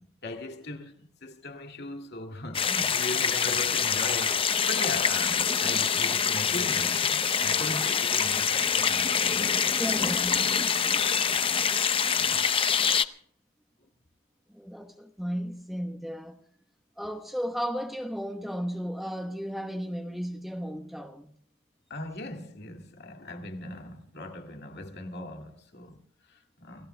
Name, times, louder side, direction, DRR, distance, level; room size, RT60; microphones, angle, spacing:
voice 1, 0.0-10.0 12.1-12.4 21.9-26.9, left 2 dB, 50° left, 2.2 m, -39 dB
sound 1, 2.5-13.0, left 7 dB, 25° left, 0.6 m, -25 dB
voice 2, 9.8-10.6 14.5-16.4 17.0-21.4, equal, ahead, 1.0 m, -34 dB
29.5 x 18.0 x 2.2 m
head